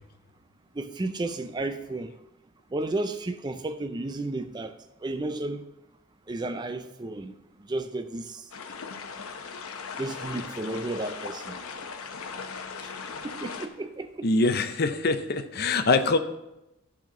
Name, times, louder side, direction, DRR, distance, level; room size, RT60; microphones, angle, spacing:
voice 1, 0.8-2.1 2.7-5.7 6.3-7.3 7.6-8.5 10.0-11.6 12.8-12.9 13.2-14.3, right 2 dB, 20° right, 0.4 m, -33 dB
sound 1, 8.5-13.7, left 5 dB, 90° left, 0.8 m, -38 dB
voice 2, 14.2-16.2, left 3 dB, 50° left, 0.6 m, -24 dB
10.5 x 4.3 x 6.0 m
head